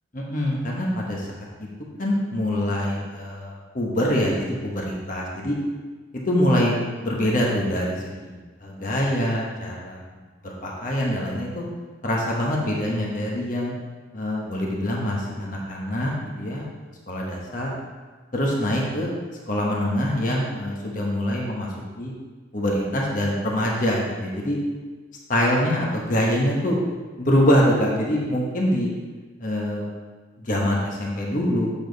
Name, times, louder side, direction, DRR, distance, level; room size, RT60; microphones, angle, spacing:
voice 1, 0.1-1.3 1.6-1.7 2.0-5.6 6.1-6.7 7.0-10.0 10.4-11.6 12.0-13.7 14.1-16.1 16.4-16.7 17.1-17.7 18.3-19.1 19.5-21.7 22.0-22.1 22.5-24.6 25.3-26.8 27.2-28.9 29.4-29.8 30.4-31.7, equal, 45° left, -3 dB, 1.2 m, -24 dB
7.3 x 7.2 x 4.0 m, 1.4 s
head